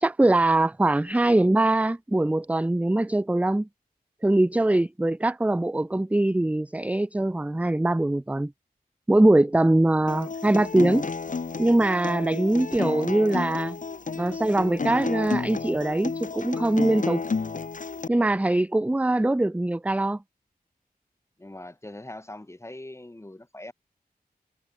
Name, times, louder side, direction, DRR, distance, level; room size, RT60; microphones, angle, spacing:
voice 1, 0.0-3.7 4.2-8.5 9.1-11.1 11.6-13.8 14.1-17.2 18.1-20.2, right 1 dB, 10° right, 0.5 m, -22 dB
Acoustic guitar, 10.1-18.1, left 4 dB, 55° left, 2.1 m, -31 dB
voice 2, 21.4-23.7, left 1 dB, 15° left, 2.6 m, -42 dB
wide cardioid pair, 90°, 16 cm